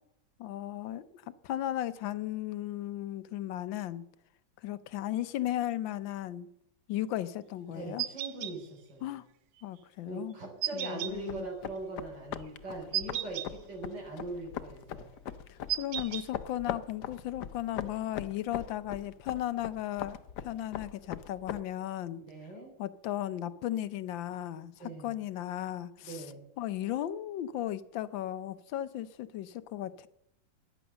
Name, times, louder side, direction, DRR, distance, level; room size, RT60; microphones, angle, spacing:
voice 1, 0.4-1.1 1.4-4.1 4.6-6.5 6.9-8.0 9.0-9.2 9.6-10.4 10.7-11.5 15.5-20.2 20.4-22.2 22.8-24.7 25.0-26.2 26.6-30.1, left 13 dB, 90° left, 1.5 m, -35 dB
voice 2, 7.7-9.1 10.1-15.1 22.1-22.7 24.8-25.2 26.0-26.4, right 2 dB, 70° right, 4.1 m, -41 dB
sound 1, 8.0-8.5 10.6-11.1 12.9-13.5 15.7-16.2, right 12 dB, 90° right, 1.5 m, -33 dB
sound 2, 11.1-21.6, left 9 dB, 65° left, 1.3 m, -41 dB
14.0 x 10.5 x 7.0 m
omnidirectional pair, 2.0 m